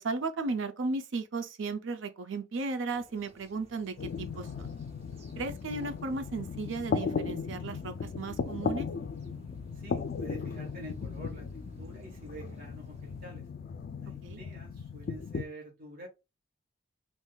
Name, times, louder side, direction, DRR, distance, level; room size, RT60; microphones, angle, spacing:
voice 1, 0.0-4.7 5.4-8.9 14.2-14.4, right 3 dB, 80° right, 0.5 m, -35 dB
sound 1, 2.9-13.3, equal, 35° right, 0.7 m, -57 dB
sound 2, 4.0-15.4, left 5 dB, 50° left, 0.3 m, -37 dB
voice 2, 9.7-11.5 11.8-13.5 14.0-16.1, right 1 dB, 50° right, 1.2 m, -47 dB
3.6 x 2.6 x 2.3 m
head